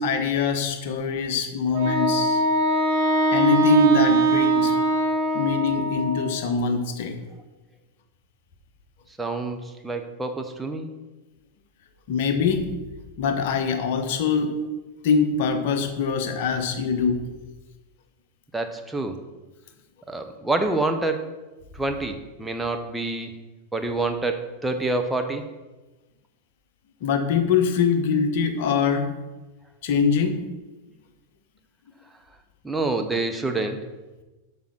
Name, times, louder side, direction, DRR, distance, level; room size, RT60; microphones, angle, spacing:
voice 1, 0.0-2.4 3.3-4.8 5.3-7.2 12.1-12.7 13.2-14.5 15.0-17.2 27.0-29.1 29.8-30.4, left 5 dB, 50° left, 7 dB, 1.0 m, -23 dB
Wind instrument woodwind instrument, 1.7-6.4, right 2 dB, 45° right, 1.7 m, -22 dB
voice 2, 9.2-10.9 18.5-19.2 20.1-21.3 21.7-23.4 23.7-25.4 32.6-33.8, right 2 dB, 5° right, 5 dB, 0.9 m, -27 dB
7.3 x 5.1 x 5.9 m, 1.1 s
figure-of-eight pair, 90°, 0 cm